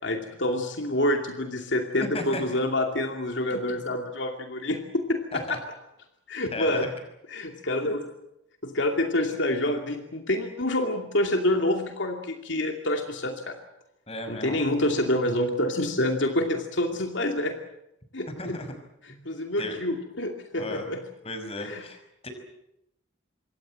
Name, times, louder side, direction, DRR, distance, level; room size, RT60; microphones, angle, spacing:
voice 1, 0.0-5.6 6.3-6.9 7.3-8.1 8.6-13.6 14.3-17.5 18.1-18.6 19.0-21.0 21.6-21.8, left 1 dB, 75° left, 4 dB, 2.6 m, -27 dB
voice 2, 6.5-6.9 7.8-7.9 14.1-14.6 18.4-18.7 19.1-19.2 19.6-19.8 20.6-20.8 21.2-22.3, left 2 dB, 30° left, 6 dB, 5.7 m, -35 dB
26.5 x 23.0 x 7.7 m, 0.83 s
head